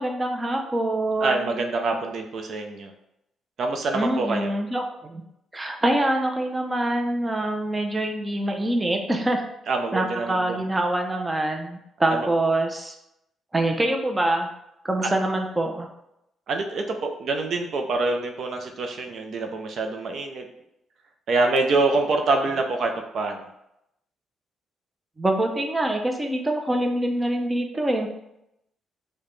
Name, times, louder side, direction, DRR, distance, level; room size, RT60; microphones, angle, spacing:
voice 1, 0.0-1.5 3.9-5.2 5.5-9.4 9.9-12.9 13.5-14.5 14.8-15.9 25.2-28.1, right 1 dB, 15° right, 3 dB, 0.5 m, -25 dB
voice 2, 1.2-2.9 3.6-4.5 9.7-10.6 12.1-12.3 15.0-15.1 16.5-20.5 21.3-23.5, right 3 dB, 60° right, 4 dB, 0.5 m, -25 dB
4.8 x 2.2 x 3.1 m, 0.83 s
cardioid pair, 90°, 0 cm